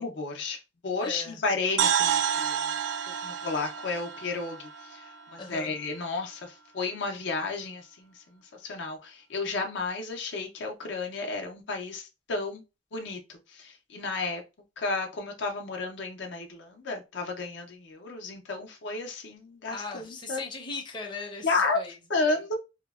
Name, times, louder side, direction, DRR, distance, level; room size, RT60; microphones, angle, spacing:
voice 1, 0.0-2.5 3.2-12.6 12.9-13.2 13.5-14.4 14.8-20.4 21.4-21.8 22.1-22.6, left 3 dB, 75° left, 0.6 m, -32 dB
voice 2, 1.0-1.4 5.4-5.7 19.7-22.0 22.2-22.4, left 3 dB, 25° left, 0.5 m, -38 dB
sound 1, 1.8-5.7, right 8 dB, 90° right, 0.3 m, -29 dB
2.8 x 2.0 x 2.3 m
head